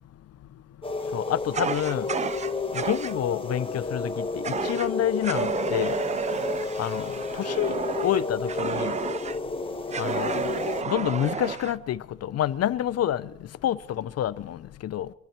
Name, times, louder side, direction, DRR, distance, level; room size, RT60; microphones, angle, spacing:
sound 1, 0.8-10.8, left 3 dB, 15° left, 1.4 m, -31 dB
voice 1, 1.1-2.1 2.7-6.0 6.8-9.0 10.0-10.6 10.8-13.3 13.6-15.1, left 11 dB, 55° left, 0.6 m, -28 dB
Fire, 1.5-3.2 4.4-4.9 5.2-9.4 9.9-11.8, right 6 dB, 25° right, 0.4 m, -31 dB
23.0 x 10.5 x 4.4 m
cardioid pair, 90°, 30 cm